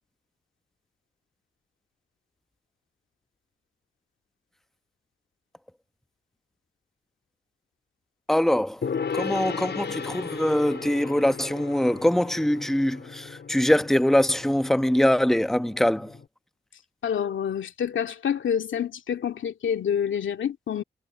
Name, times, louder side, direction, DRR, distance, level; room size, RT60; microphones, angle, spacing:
voice 1, 8.3-8.8 9.1-16.1, left 1 dB, ahead, 1.1 m, -23 dB
Gong, 8.8-16.3, left 6 dB, 65° left, 4.9 m, -36 dB
voice 2, 17.0-20.8, left 8 dB, 80° left, 2.3 m, -27 dB
cardioid pair, 45°, 20 cm